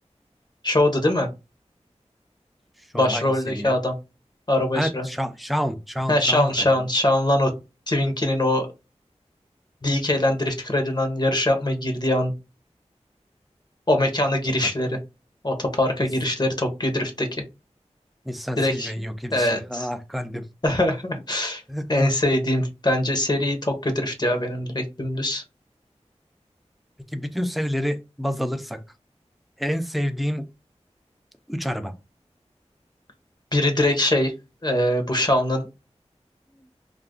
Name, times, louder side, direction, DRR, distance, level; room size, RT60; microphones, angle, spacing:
voice 1, 0.6-1.3 2.9-3.9 4.5-5.1 6.1-7.5 7.9-8.7 9.8-12.3 13.9-15.0 15.4-17.4 18.6-18.9 19.3-19.9 20.6-21.6 21.9-25.4 33.5-34.3 34.6-35.7, left 1 dB, 35° left, 5 dB, 0.8 m, -22 dB
voice 2, 2.8-3.8 4.7-6.7 18.3-20.5 21.7-22.1 27.1-28.8 29.6-30.5 31.5-31.9, equal, ahead, 9 dB, 0.5 m, -28 dB
2.4 x 2.3 x 3.5 m, 0.26 s
wide cardioid pair, 45°, 12 cm